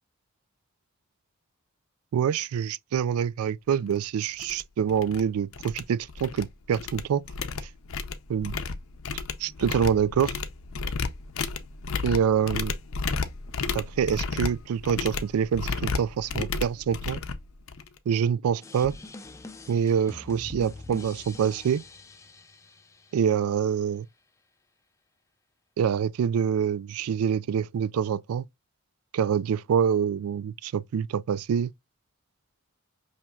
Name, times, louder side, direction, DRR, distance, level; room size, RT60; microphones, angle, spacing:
voice 1, 2.1-7.2 8.3-8.5 9.4-10.3 12.0-12.7 13.7-17.2 18.1-19.0 19.7-21.8 23.1-24.1 25.8-28.5 29.1-31.7, right 7 dB, 85° right, 0.3 m, -26 dB
sound 1, 3.9-4.0 4.4-4.6 4.9-5.2 5.5-6.5 6.7-18.0, left 4 dB, 70° left, 0.6 m, -32 dB
sound 2, 18.6-23.6, left 2 dB, 15° left, 0.3 m, -44 dB
5.8 x 3.1 x 2.3 m
head